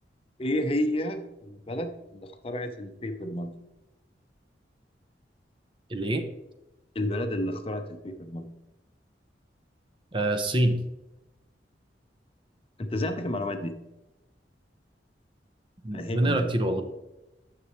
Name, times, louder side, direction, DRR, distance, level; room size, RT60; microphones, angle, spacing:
voice 1, 0.4-3.6 6.9-8.5 12.8-13.8 15.9-16.5, left 1 dB, 30° left, 7 dB, 0.6 m, -31 dB
voice 2, 5.9-6.3 10.1-10.8 15.8-16.8, right 1 dB, 30° right, 7 dB, 0.6 m, -25 dB
9.9 x 6.7 x 3.1 m, 0.96 s
head